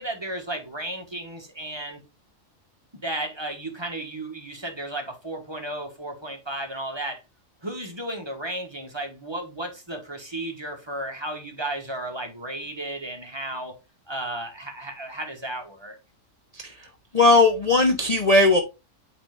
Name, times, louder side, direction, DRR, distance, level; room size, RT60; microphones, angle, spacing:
voice 1, 0.0-2.0 2.9-7.2 7.6-13.8 14.1-16.0, right 1 dB, 20° right, 1.4 m, -34 dB
voice 2, 16.5-16.9 17.1-18.6, left 2 dB, 35° left, 0.8 m, -18 dB
8.6 x 3.9 x 3.4 m
omnidirectional pair, 1.4 m